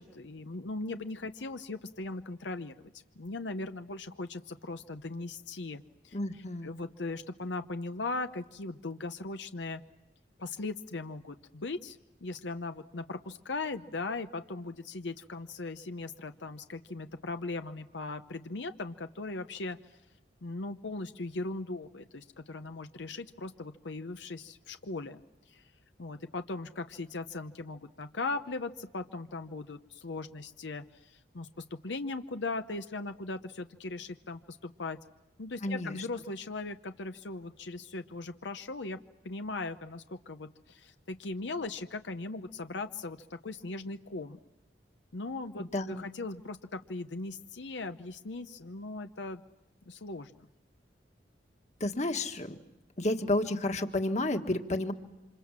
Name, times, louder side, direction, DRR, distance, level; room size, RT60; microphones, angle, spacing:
voice 1, 0.0-9.8 10.4-20.0 20.4-25.2 25.5-25.6 26.0-35.0 35.4-39.0 39.2-44.4 45.1-49.4 49.9-50.5, left 3 dB, 85° left, 8 dB, 0.9 m, -39 dB
voice 2, 6.1-6.8 35.6-36.0 45.6-46.0 51.8-52.5 53.0-54.9, left 1 dB, 40° left, 6 dB, 1.7 m, -31 dB
27.5 x 26.5 x 7.5 m, 1.0 s
head